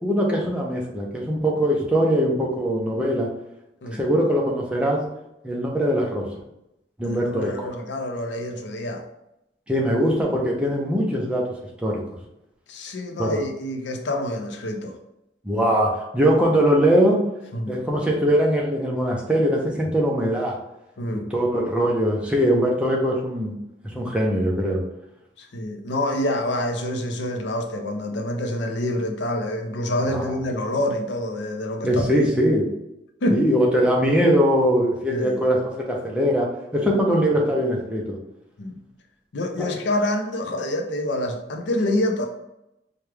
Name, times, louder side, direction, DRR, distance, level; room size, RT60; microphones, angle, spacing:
voice 1, 0.0-3.3 3.9-5.0 5.4-6.3 7.0-7.7 9.7-11.5 11.8-12.0 13.2-13.4 15.4-17.2 17.7-20.6 21.3-23.5 23.8-24.8 30.1-30.3 31.8-32.7 33.3-38.2 39.6-39.7, equal, 5° right, -2 dB, 0.6 m, -21 dB
voice 2, 7.0-9.0 12.7-14.9 17.5-17.8 21.0-21.3 25.4-32.3 33.2-33.4 35.1-35.4 38.6-38.8 39.3-42.3, left 1 dB, 80° left, 4 dB, 0.6 m, -27 dB
4.6 x 2.3 x 3.3 m, 0.85 s
head